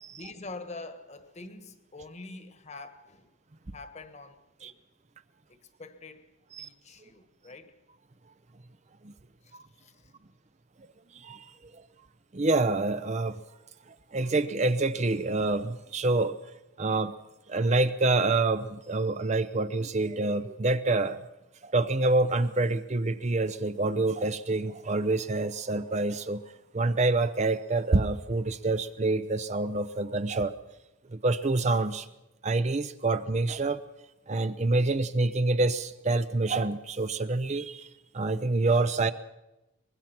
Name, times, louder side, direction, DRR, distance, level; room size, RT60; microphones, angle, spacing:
voice 1, 0.1-3.3 3.7-4.8 5.5-6.3 6.6-7.8 9.4-10.1, left 3 dB, 35° left, 1.4 m, -45 dB
voice 2, 11.1-11.8 12.3-13.4 13.9-16.4 16.8-17.2 17.5-21.2 21.6-26.4 26.7-30.6 31.1-32.1 32.4-33.8 34.3-39.1, right 2 dB, 35° right, 0.6 m, -27 dB
23.5 x 20.5 x 5.9 m
head